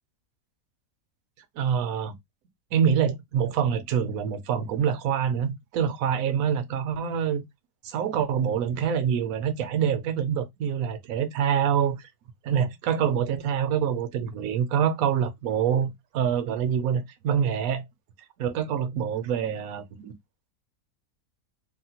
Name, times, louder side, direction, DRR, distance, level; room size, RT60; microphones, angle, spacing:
voice 1, 1.6-2.1 2.7-7.4 7.8-12.1 12.4-17.8 18.4-20.1, right 8 dB, 75° right, 1.0 m, -26 dB
3.4 x 2.1 x 2.8 m
omnidirectional pair, 1.6 m